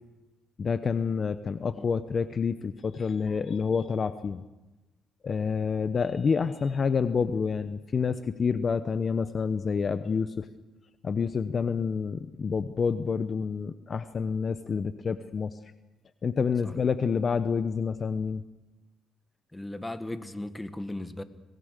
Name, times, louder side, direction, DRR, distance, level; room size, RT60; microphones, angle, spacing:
voice 1, 0.6-4.4 5.2-10.5 11.0-15.5 16.2-18.4, left 5 dB, 45° left, 11 dB, 0.9 m, -28 dB
voice 2, 19.5-21.2, left 1 dB, 10° left, 10 dB, 1.7 m, -37 dB
26.0 x 19.5 x 6.7 m, 1.0 s
cardioid pair, 90°, 0 cm